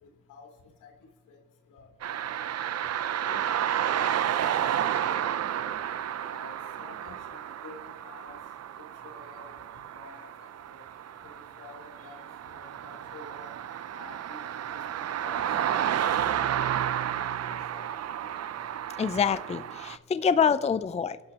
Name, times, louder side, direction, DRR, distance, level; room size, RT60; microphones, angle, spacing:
voice 1, 0.0-0.5 0.8-0.9 1.3-1.4 1.7-1.9 2.6-2.7 3.2-5.7 6.2-8.4 8.8-9.5 9.9-10.8 11.2-12.2 12.5-13.5 13.9-14.4 14.7-15.9 16.2-16.7 17.1-17.4 17.7-18.0, left 4 dB, 85° left, 3 dB, 3.4 m, -50 dB
sound 1, 2.0-20.0, right 10 dB, 55° right, 0.7 m, -31 dB
voice 2, 19.0-21.2, left 6 dB, 20° left, 14 dB, 0.5 m, -26 dB
26.5 x 12.0 x 2.9 m, 1.3 s
cardioid pair, 90°, 30 cm